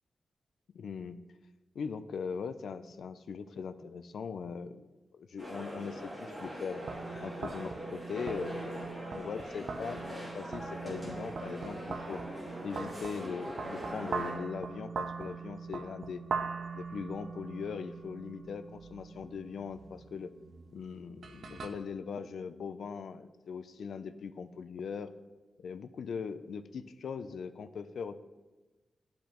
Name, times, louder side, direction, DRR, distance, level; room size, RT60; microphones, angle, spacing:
voice 1, 0.7-1.2 1.7-4.9 5.1-6.8 7.2-12.2 12.6-16.2 16.7-20.3 20.7-25.1 25.6-28.2, left 6 dB, 90° left, 12 dB, 0.4 m, -40 dB
sound 1, 5.4-14.3, right 1 dB, ahead, 2.4 m, -42 dB
sound 2, 6.8-21.7, right 5 dB, 70° right, 0.5 m, -42 dB
11.5 x 5.2 x 3.0 m, 1.2 s
wide cardioid pair, 150°, 0 cm